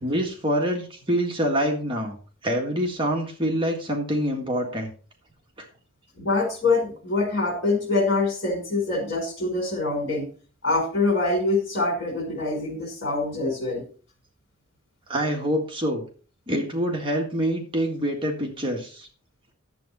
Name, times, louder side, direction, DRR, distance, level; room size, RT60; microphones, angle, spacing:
voice 1, 0.0-2.2 2.4-4.9 5.6-5.7 15.1-16.0 16.5-19.1, equal, 25° right, 0 dB, 1.6 m, -26 dB
voice 2, 6.2-10.3 10.6-13.8, left 3 dB, 55° left, 2 dB, 4.6 m, -25 dB
10.5 x 7.8 x 4.1 m, 0.40 s
head